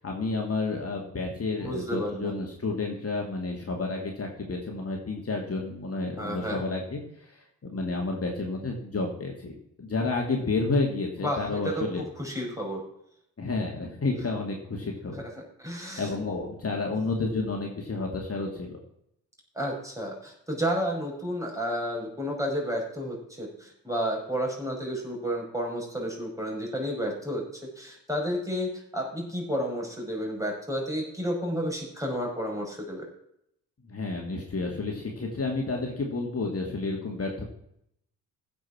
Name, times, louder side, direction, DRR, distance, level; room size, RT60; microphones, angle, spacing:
voice 1, 0.0-12.0 13.4-15.2 15.8-18.8 33.8-37.5, left 3 dB, 35° left, 0 dB, 2.6 m, -31 dB
voice 2, 1.6-2.3 6.2-6.6 11.2-12.8 15.2-15.3 15.6-16.1 19.6-27.4 27.8-33.0, equal, 5° right, -1 dB, 5.9 m, -31 dB
15.5 x 5.8 x 6.0 m, 0.74 s
hypercardioid pair, 40°, 42 cm